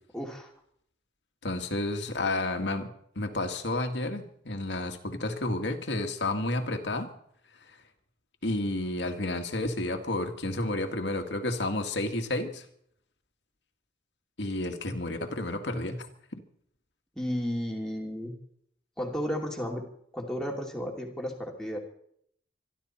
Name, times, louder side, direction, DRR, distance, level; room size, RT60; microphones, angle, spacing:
voice 1, 0.1-0.5 17.2-18.3 19.0-19.8 20.1-21.8, equal, 5° left, 0 dB, 2.7 m, -33 dB
voice 2, 1.4-7.1 8.4-12.6 14.4-16.1 16.3-16.4, left 2 dB, 85° left, 5 dB, 2.0 m, -31 dB
25.0 x 12.0 x 4.4 m, 0.66 s
head